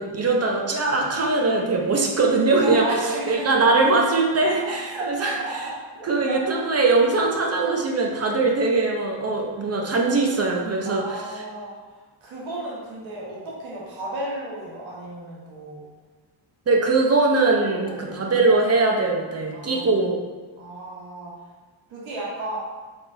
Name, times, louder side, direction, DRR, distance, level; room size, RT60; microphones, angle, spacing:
voice 1, 0.0-5.4 6.0-11.2 16.7-20.2, right 3 dB, 30° right, 0 dB, 0.6 m, -21 dB
voice 2, 1.4-2.0 2.6-3.7 4.4-6.5 9.8-10.2 10.8-15.8 17.6-18.4 19.5-20.1 20.6-21.4 21.9-22.6, right 2 dB, 70° right, -5 dB, 1.3 m, -34 dB
4.2 x 3.3 x 2.7 m, 1.4 s
cardioid pair, 115°, 49 cm